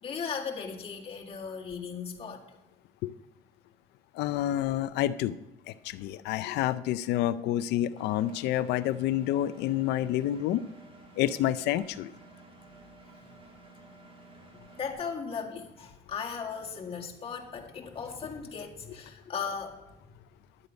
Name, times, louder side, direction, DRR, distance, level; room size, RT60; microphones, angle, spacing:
voice 1, 0.0-2.4 14.8-20.1, left 6 dB, 35° left, 0 dB, 1.8 m, -37 dB
voice 2, 4.2-5.4 5.7-10.6 11.2-12.1, left 13 dB, 85° left, 14 dB, 0.5 m, -28 dB
Engine, 8.0-14.9, right 2 dB, 30° right, 2.0 m, -53 dB
11.0 x 8.1 x 5.1 m, 1.0 s
cardioid pair, 110°, 17 cm